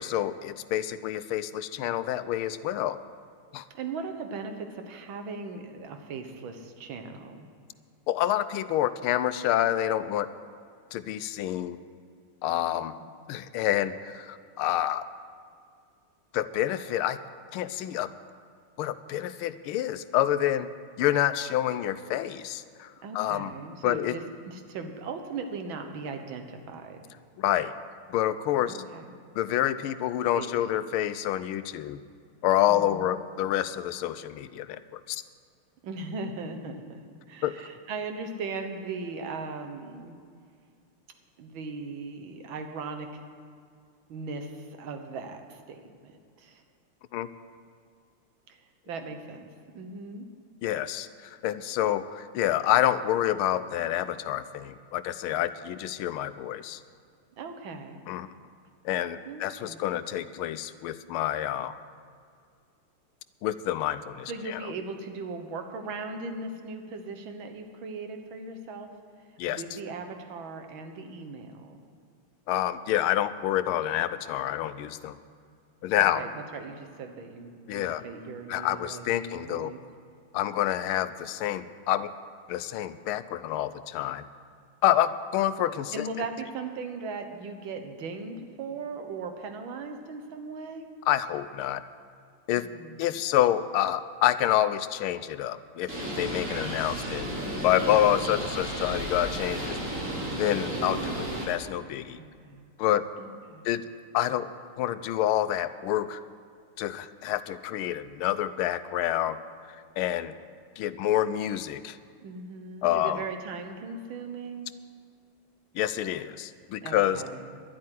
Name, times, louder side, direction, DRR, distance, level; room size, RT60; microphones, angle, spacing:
voice 1, 0.0-3.0 3.5-3.6 8.1-10.3 10.9-11.8 12.4-12.9 13.3-15.1 16.3-17.2 17.5-18.1 18.8-20.7 21.0-23.5 23.8-24.2 27.4-27.7 28.1-28.8 29.4-32.0 32.4-35.2 37.4-37.6 47.1-47.3 50.6-56.8 58.1-58.3 58.8-61.8 63.4-64.6 69.4-69.6 72.5-75.2 75.8-76.2 77.7-78.0 78.5-79.7 80.3-82.1 82.5-84.2 84.8-86.0 91.1-91.8 92.5-92.7 93.0-95.9 96.2-97.3 97.6-99.8 100.4-102.2 102.8-103.0 103.6-103.8 104.1-104.5 104.8-106.2 106.8-109.4 110.0-110.3 110.8-112.0 112.8-113.2 115.7-117.2, left 12 dB, 85° left, 13 dB, 1.5 m, -27 dB
voice 2, 3.7-7.5 23.0-27.0 28.7-29.1 30.3-30.5 32.7-33.1 35.8-37.0 37.3-40.2 41.4-43.2 44.1-46.1 46.4-46.6 48.5-48.6 48.9-49.5 49.8-50.3 57.4-58.0 59.3-59.9 64.3-68.9 69.5-71.8 76.0-79.8 85.9-90.9 92.5-93.2 102.2-102.7 103.2-103.7 112.2-114.7 116.8-117.6, right 4 dB, 70° right, 6 dB, 1.9 m, -38 dB
Bird, 95.9-101.4, right 1 dB, 45° right, 3.5 m, -33 dB
11.5 x 8.6 x 10.0 m, 2.2 s
omnidirectional pair, 2.3 m